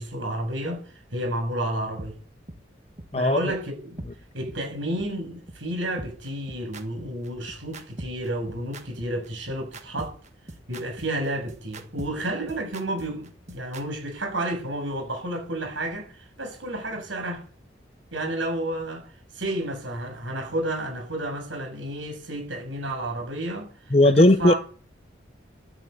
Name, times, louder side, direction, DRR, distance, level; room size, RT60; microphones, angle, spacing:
voice 1, 0.0-2.2 3.1-4.0 4.3-10.2 10.7-17.4 18.1-24.6, right 1 dB, 85° right, 7.4 m, -31 dB
sound 1, 2.0-2.1 2.5-2.6 3.0-3.1 3.5-3.6 4.0-4.1 4.5-4.6 5.0-5.1 5.5-5.6 6.0-13.8, right 1 dB, 35° right, 1.6 m, -40 dB
voice 2, 23.9-24.5, left 1 dB, 30° left, 0.8 m, -16 dB
13.0 x 9.8 x 8.3 m
head